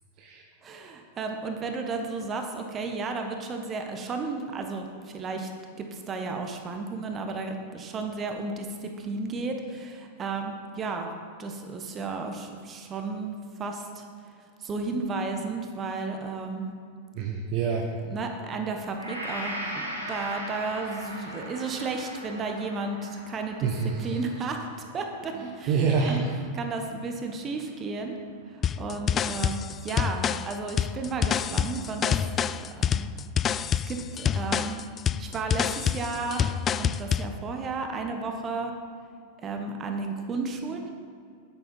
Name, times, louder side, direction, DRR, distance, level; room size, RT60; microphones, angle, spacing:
voice 1, 0.6-5.5 5.8-11.1 11.4-14.0 14.6-16.7 18.0-23.7 24.0-24.6 24.9-25.8 26.0-26.2 26.5-28.2 28.5-32.3 32.8-33.1 33.9-34.8 35.1-36.4 36.8-38.7 39.4-40.9, right 3 dB, 25° right, 4 dB, 1.4 m, -33 dB
voice 2, 17.1-17.9 23.6-24.2 25.4-26.3, right 5 dB, 40° right, 1 dB, 1.0 m, -27 dB
Gong, 19.0-27.0, equal, 90° right, 1.9 m, -40 dB
sound 1, 28.6-37.3, left 8 dB, 25° left, 0.3 m, -27 dB
9.9 x 9.1 x 5.5 m, 2.4 s
figure-of-eight pair, 90°, 0 cm